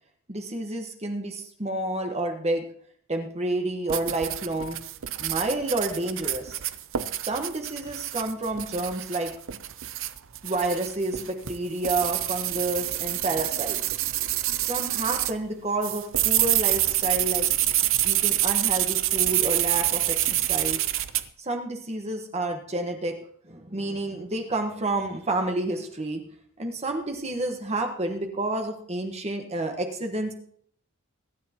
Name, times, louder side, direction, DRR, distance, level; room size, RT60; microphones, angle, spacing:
voice 1, 0.3-2.6 3.1-4.8 5.2-6.6 7.3-9.3 10.4-13.8 14.6-17.5 18.0-20.8 21.4-23.1 23.5-26.2 26.6-30.3, right 2 dB, 30° right, 3 dB, 1.3 m, -29 dB
sound 1, 3.9-15.4 15.8-21.2, right 14 dB, 60° right, 0.7 m, -27 dB
23.5 x 10.5 x 3.0 m, 0.62 s
head